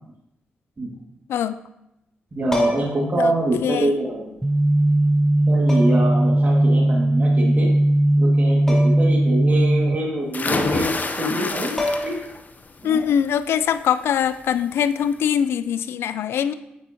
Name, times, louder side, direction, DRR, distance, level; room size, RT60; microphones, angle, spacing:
voice 1, 1.3-1.6 3.2-3.3 3.6-3.9 12.8-16.5, left 8 dB, 75° left, 13 dB, 0.4 m, -22 dB
voice 2, 2.3-4.2 5.5-7.7 8.2-10.9 11.2-12.2 12.8-13.1, right 1 dB, 40° right, -3 dB, 2.1 m, -25 dB
sound 1, 2.5-3.1 4.4-4.5 5.7-6.1 8.7-9.1 9.4-9.5 11.4-11.5 11.8-12.4 14.3-14.5, left 1 dB, 10° left, 2.9 m, -27 dB
sound 2, 4.4-10.0, right 1 dB, 10° right, 0.5 m, -18 dB
sound 3, 10.3-12.4 12.8-13.3 14.6-14.7 15.1-15.2, left 3 dB, 40° left, 0.9 m, -26 dB
9.3 x 8.8 x 2.9 m, 0.86 s
supercardioid pair, 45°, 4 cm